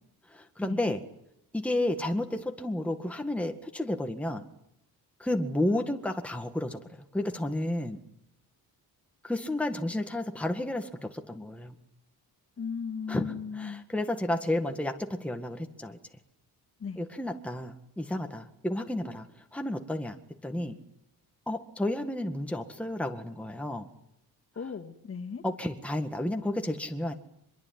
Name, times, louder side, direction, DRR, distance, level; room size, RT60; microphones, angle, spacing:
voice 1, 0.3-1.0 1.5-4.5 5.2-8.0 9.2-11.7 13.1-16.0 17.0-20.2 20.4-20.8 21.5-23.9 25.4-27.1, left 1 dB, 5° left, 5 dB, 1.9 m, -32 dB
voice 2, 12.6-13.8 16.8-17.0 24.6-25.4, left 6 dB, 35° left, 6 dB, 2.5 m, -37 dB
25.0 x 22.5 x 9.6 m, 0.77 s
cardioid pair, 145°, 38 cm